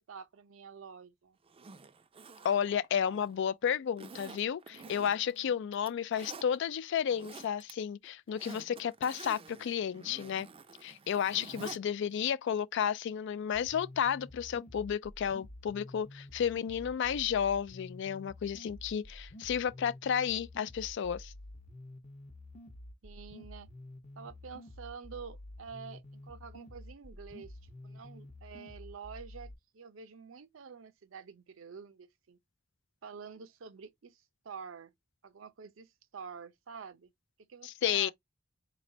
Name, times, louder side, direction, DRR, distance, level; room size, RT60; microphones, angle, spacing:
voice 1, 0.1-1.4 4.7-5.6 11.5-11.8 23.0-23.7 24.2-32.4 33.0-34.9 35.2-37.1 37.5-38.1, right 6 dB, 75° right, 0.6 m, -48 dB
Zipper (clothing), 1.5-3.4 4.0-5.4 5.7-6.5 7.0-7.7 8.0-11.8 12.1-12.2, right 4 dB, 25° right, 0.4 m, -49 dB
voice 2, 2.4-10.5 10.8-21.3 37.6-38.1, left 8 dB, 60° left, 0.3 m, -32 dB
sound 1, 13.5-29.5, left 1 dB, 35° left, 0.8 m, -50 dB
4.1 x 3.1 x 2.6 m
head